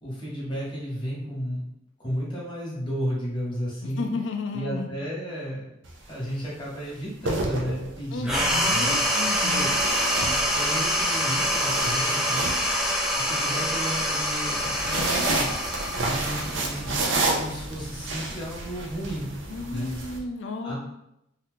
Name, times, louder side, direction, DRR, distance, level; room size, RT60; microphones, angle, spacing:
voice 1, 0.0-1.6 2.0-4.1 4.5-5.6 6.1-9.0 9.4-9.7 10.5-12.5 13.1-15.5 16.0-19.3 19.7-19.9 20.6-20.7, equal, 25° left, -6 dB, 1.2 m, -33 dB
voice 2, 3.8-4.9 8.1-9.8 19.5-20.7, left 3 dB, 70° left, 5 dB, 0.4 m, -33 dB
sound 1, 5.8-6.1 7.0-8.2 9.7-10.9 11.3-13.4 14.5-20.2, right 2 dB, 75° right, 0.6 m, -30 dB
sound 2, 8.2-17.1, equal, 5° right, 0.4 m, -25 dB
2.7 x 2.3 x 3.6 m, 0.82 s
head